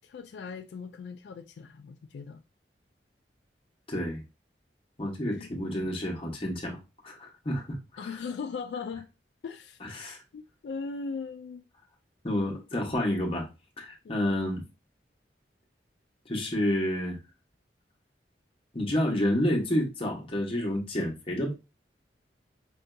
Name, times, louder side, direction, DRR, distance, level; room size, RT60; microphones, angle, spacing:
voice 1, 0.0-2.4 5.4-5.5 8.0-9.1 9.4-9.8 10.3-11.7 14.0-14.3, left 5 dB, 70° left, 0.3 m, -38 dB
voice 2, 3.9-4.2 5.0-8.1 9.8-10.2 12.2-13.5 13.8-14.6 16.3-17.2 18.7-21.5, left 1 dB, 30° left, 1.0 m, -29 dB
5.3 x 2.7 x 2.2 m
head